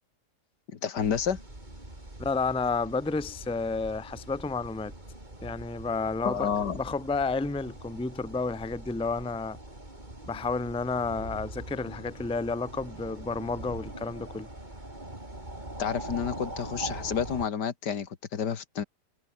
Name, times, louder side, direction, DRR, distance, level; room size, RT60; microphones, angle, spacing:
voice 1, 0.8-1.4 6.2-6.8 15.8-18.8, left 7 dB, 80° left, 2.2 m, -30 dB
sound 1, 1.0-17.5, right 1 dB, 25° right, 5.4 m, -42 dB
voice 2, 2.2-4.9 5.4-9.6 10.3-14.5, left 4 dB, 5° left, 0.6 m, -31 dB
omnidirectional pair, 1.8 m